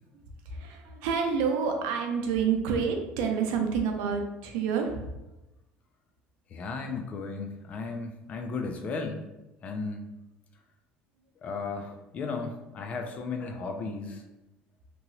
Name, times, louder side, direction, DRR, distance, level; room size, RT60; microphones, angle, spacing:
voice 1, 0.5-5.1, right 6 dB, 85° right, 3 dB, 0.5 m, -28 dB
voice 2, 6.5-9.2 9.6-10.1 11.4-14.2, left 4 dB, 35° left, 4 dB, 0.4 m, -35 dB
3.0 x 2.8 x 2.6 m, 0.98 s
cardioid pair, 140°, 4 cm